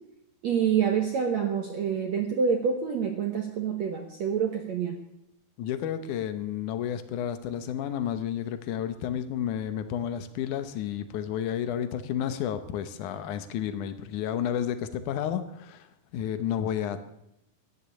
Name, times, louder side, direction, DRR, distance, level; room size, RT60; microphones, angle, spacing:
voice 1, 0.4-5.0, right 7 dB, 70° right, 4 dB, 1.7 m, -27 dB
voice 2, 5.6-17.0, left 9 dB, 80° left, 10 dB, 1.7 m, -31 dB
14.5 x 10.0 x 9.9 m, 0.84 s
omnidirectional pair, 4.9 m